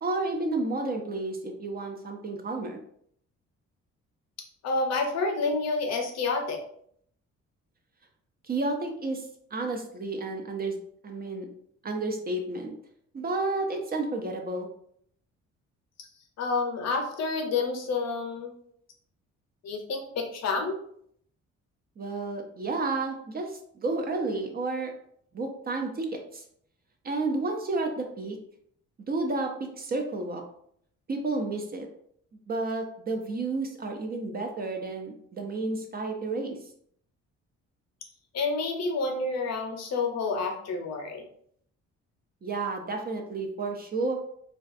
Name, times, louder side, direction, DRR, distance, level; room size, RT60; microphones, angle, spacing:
voice 1, 0.0-2.8 8.4-10.8 11.0-11.5 11.8-12.7 13.1-14.7 22.0-24.9 25.3-26.4 27.0-28.4 29.1-30.4 31.1-31.9 32.5-36.6 42.4-44.1, right 3 dB, 30° right, 3 dB, 0.4 m, -31 dB
voice 2, 4.6-6.6 16.4-18.5 19.6-20.8 38.3-41.2, left 3 dB, 60° left, 3 dB, 0.6 m, -29 dB
2.3 x 2.3 x 2.5 m, 0.67 s
cardioid pair, 90°, 30 cm